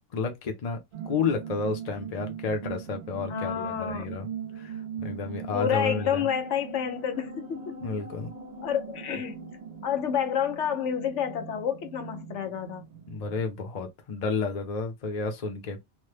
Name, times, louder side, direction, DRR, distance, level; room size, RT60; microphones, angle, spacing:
voice 1, 0.1-4.3 4.6-6.2 7.8-8.3 13.1-15.8, left 4 dB, 40° left, 0.7 m, -31 dB
sound 1, 0.9-13.4, right 6 dB, 70° right, 1.0 m, -40 dB
voice 2, 3.3-4.1 5.5-7.7 8.6-9.4 9.8-12.8, left 8 dB, 85° left, 1.1 m, -29 dB
3.0 x 2.1 x 3.2 m
omnidirectional pair, 1.2 m